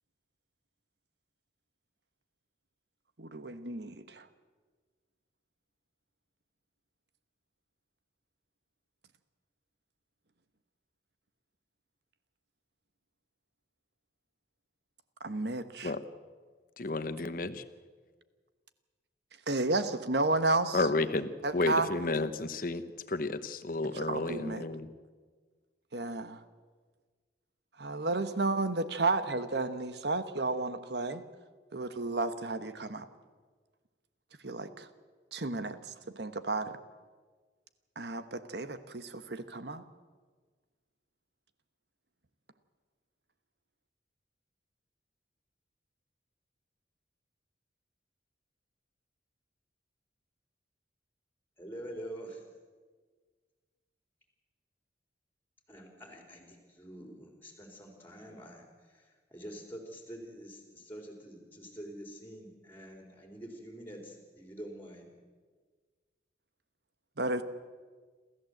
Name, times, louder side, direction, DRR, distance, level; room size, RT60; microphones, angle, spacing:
voice 1, 3.2-4.2 15.2-15.9 19.5-20.9 21.4-21.9 23.9-24.7 25.9-26.4 27.8-31.2 31.7-33.0 34.4-34.9 35.3-35.8 36.1-36.7 38.0-39.8 67.2-67.4, right 2 dB, 65° right, 11 dB, 1.2 m, -32 dB
voice 2, 16.8-17.6 20.7-22.8 23.1-24.9, left 2 dB, 50° left, 11 dB, 1.0 m, -32 dB
voice 3, 51.6-52.4 55.7-65.1, right 1 dB, 10° left, 2 dB, 3.9 m, -46 dB
27.5 x 14.0 x 7.9 m, 1.5 s
head